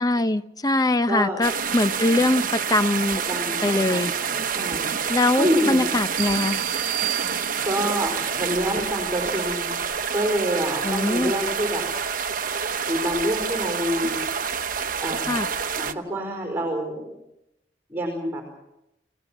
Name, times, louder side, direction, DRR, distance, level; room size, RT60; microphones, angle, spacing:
voice 1, 0.0-3.2 3.6-4.1 5.1-6.6 10.8-11.3 15.3-15.5, left 2 dB, 20° left, 12 dB, 0.7 m, -22 dB
voice 2, 1.1-1.4 3.3-4.0 4.5-4.9 5.4-5.8 7.6-9.8 10.1-11.8 12.9-14.2 15.0-15.4 15.8-17.2 17.9-18.4, equal, 15° right, 3 dB, 4.6 m, -27 dB
sound 1, 1.4-15.9, right 6 dB, 50° right, 1.0 m, -28 dB
sound 2, 6.2-8.0, right 22 dB, 75° right, 1.2 m, -31 dB
30.0 x 19.0 x 6.2 m, 0.87 s
head